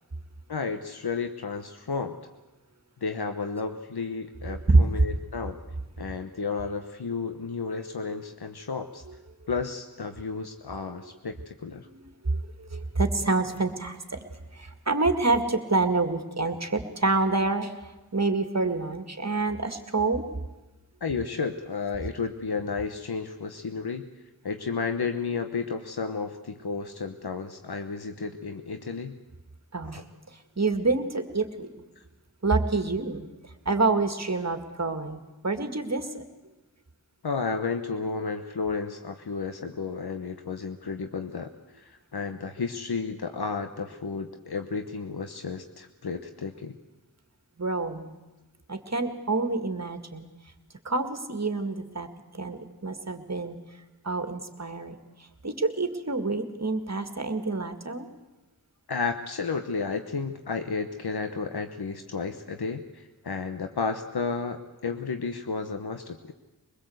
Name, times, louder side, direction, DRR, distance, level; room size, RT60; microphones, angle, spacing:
voice 1, 0.5-2.2 3.0-5.6 6.0-9.0 9.5-11.9 21.0-24.1 24.4-29.2 29.9-30.0 37.2-46.8 58.9-66.3, left 4 dB, 85° left, 7 dB, 1.2 m, -32 dB
voice 2, 4.5-4.8 9.1-9.2 11.8-17.8 18.1-20.2 29.7-31.7 32.4-36.2 47.6-48.2 48.7-50.3 50.8-52.1 52.3-53.6 54.0-58.1, right 3 dB, 45° right, 7 dB, 2.1 m, -27 dB
23.0 x 21.0 x 7.9 m, 1.1 s
wide cardioid pair, 65°, 38 cm